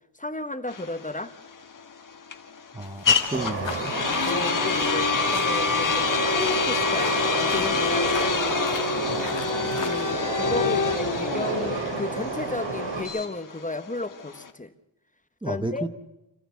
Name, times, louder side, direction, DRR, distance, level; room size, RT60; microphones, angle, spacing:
voice 1, 0.2-1.3 4.3-6.0 6.3-8.4 9.7-14.7 15.4-15.9, left 2 dB, 20° left, 10 dB, 1.1 m, -33 dB
sound 1, 0.7-14.5, left 5 dB, 45° left, 1.5 m, -26 dB
voice 2, 2.7-4.0 15.4-15.9, right 1 dB, 10° right, 6 dB, 0.9 m, -32 dB
sound 2, 2.8-10.1, left 6 dB, 85° left, 2.2 m, -40 dB
Train, 3.3-13.0, right 3 dB, 90° right, 6.1 m, -30 dB
28.5 x 14.0 x 8.3 m, 0.92 s
wide cardioid pair, 110°, 43 cm